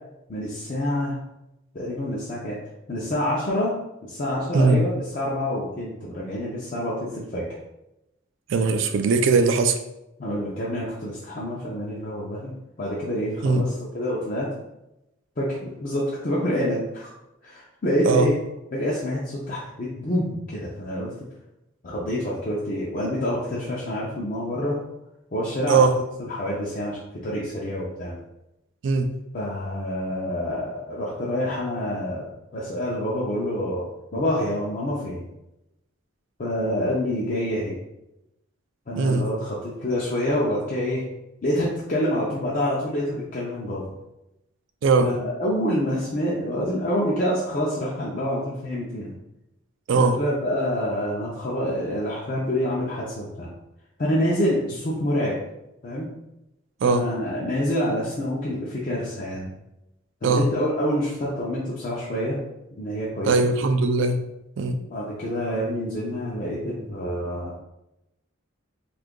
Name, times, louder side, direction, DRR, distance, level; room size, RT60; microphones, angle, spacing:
voice 1, 0.3-1.2 1.7-2.6 2.9-3.8 4.0-7.5 10.2-12.5 12.8-14.5 15.4-17.1 17.4-18.3 18.7-21.1 21.8-24.8 25.3-28.2 29.3-33.8 34.1-35.3 36.4-37.7 38.9-41.0 41.4-43.9 45.0-49.1 49.9-53.5 54.0-55.4 55.8-56.1 56.8-59.5 60.2-62.4 62.8-63.3 64.9-67.5, equal, 40° left, -6 dB, 0.5 m, -27 dB
voice 2, 8.5-9.8 13.4-13.6 18.1-18.3 25.7-26.0 28.8-29.1 39.0-39.3 44.8-45.1 49.9-50.2 56.8-57.1 60.2-60.5 63.2-64.2 64.6-64.8, right 4 dB, 60° right, 7 dB, 0.3 m, -19 dB
2.7 x 2.4 x 3.6 m, 0.90 s
head